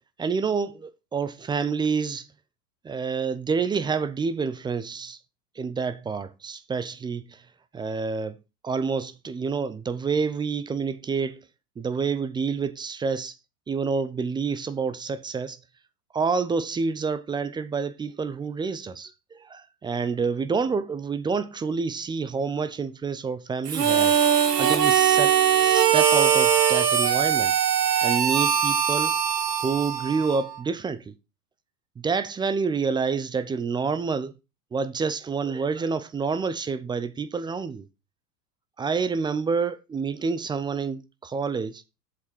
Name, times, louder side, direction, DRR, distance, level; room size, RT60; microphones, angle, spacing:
voice 1, 0.2-2.3 2.8-5.2 5.6-7.4 7.7-8.4 8.6-11.4 11.8-13.3 13.7-15.6 16.1-24.2 24.6-27.5 28.0-29.1 29.6-31.1 32.0-34.3 34.7-37.9 38.8-41.8, right 5 dB, 10° right, 0.4 m, -28 dB
Harmonica, 23.7-30.6, right 8 dB, 80° right, 1.5 m, -21 dB
7.5 x 5.1 x 5.5 m
hypercardioid pair, 90°, 47 cm